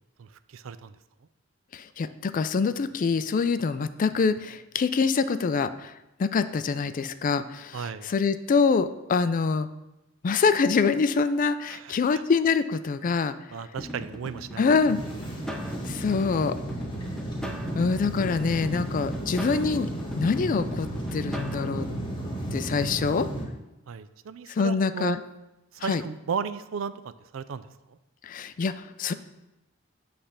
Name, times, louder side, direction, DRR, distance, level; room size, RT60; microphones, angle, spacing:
voice 1, 0.2-0.9 7.7-8.1 11.7-12.0 13.5-14.7 23.9-25.2 25.8-26.9 27.3-27.7, right 6 dB, 70° right, 14 dB, 0.4 m, -34 dB
voice 2, 1.7-5.9 6.2-9.7 10.2-13.3 14.6-15.0 15.8-16.5 17.7-19.9 20.2-21.9 22.5-23.3 24.5-25.2 25.8-26.0 28.2-29.1, left 5 dB, 40° left, 12 dB, 0.3 m, -25 dB
sound 1, 13.8-21.6, equal, 5° left, 0.6 m, -40 dB
sound 2, 14.8-23.4, right 1 dB, 25° left, 1.4 m, -33 dB
8.7 x 3.4 x 5.7 m, 0.96 s
head